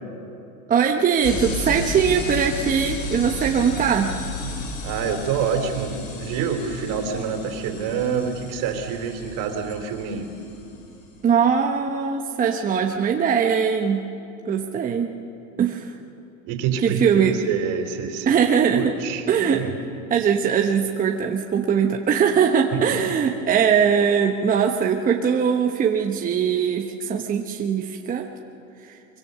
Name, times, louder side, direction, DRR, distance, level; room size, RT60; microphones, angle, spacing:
voice 1, 0.7-4.1 11.2-14.0 14.4-15.1 15.6-15.9 16.8-17.3 18.3-18.9 19.3-19.6 20.1-28.3, right 7 dB, 20° right, 3 dB, 1.0 m, -21 dB
sound 1, 1.2-11.2, left 2 dB, 85° left, 4.9 m, -33 dB
voice 2, 4.8-10.3 16.5-18.3 18.8-19.2 19.6-19.7 22.7-23.0, right 6 dB, 50° right, 5 dB, 3.4 m, -27 dB
24.0 x 24.0 x 6.8 m, 2.9 s
supercardioid pair, 130°, 39 cm